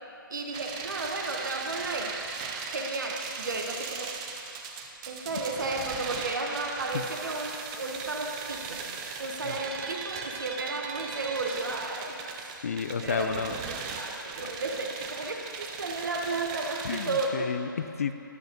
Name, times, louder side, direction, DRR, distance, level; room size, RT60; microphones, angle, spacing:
voice 1, 0.3-2.1 2.7-4.1 5.1-8.8 9.2-12.6 13.0-13.4 13.9-17.6, right 3 dB, 60° right, 2 dB, 1.1 m, -33 dB
sound 1, 0.5-17.3, right 5 dB, 20° right, 0.4 m, -38 dB
voice 2, 12.6-13.6 14.4-14.5 16.8-18.1, left 6 dB, 40° left, 9 dB, 0.3 m, -31 dB
11.5 x 6.3 x 3.8 m, 2.8 s
figure-of-eight pair, 140°, 11 cm